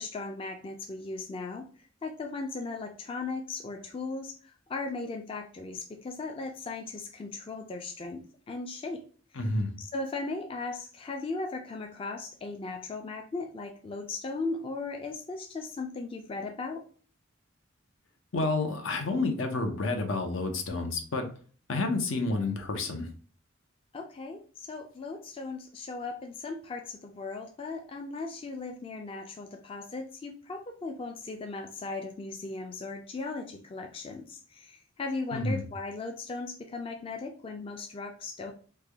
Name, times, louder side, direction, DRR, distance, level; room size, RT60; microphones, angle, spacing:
voice 1, 0.0-1.7 2.0-9.0 9.9-16.8 23.9-38.5, left 3 dB, 25° left, 3 dB, 0.3 m, -37 dB
voice 2, 9.4-9.7 18.3-21.3 21.7-23.1 35.3-35.6, left 2 dB, 80° left, 5 dB, 0.7 m, -29 dB
3.3 x 2.1 x 3.4 m, 0.41 s
head